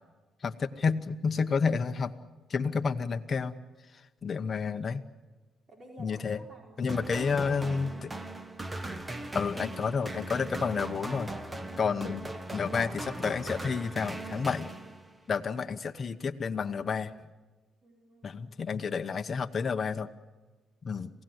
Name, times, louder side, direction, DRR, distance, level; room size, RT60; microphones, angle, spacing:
voice 1, 0.4-2.1 2.5-3.6 4.2-5.0 6.0-6.4 6.8-8.1 9.3-11.3 11.8-12.2 12.5-14.7 15.3-17.1 18.2-20.1 20.8-21.1, left 5 dB, 40° left, 6 dB, 1.0 m, -30 dB
voice 2, 5.7-7.0 15.4-15.5 17.8-18.4, right 1 dB, 45° right, -1 dB, 4.8 m, -53 dB
sound 1, 6.9-15.3, right 2 dB, 20° right, 1.4 m, -39 dB
27.5 x 17.0 x 7.9 m, 1.2 s
cardioid pair, 90°, 0 cm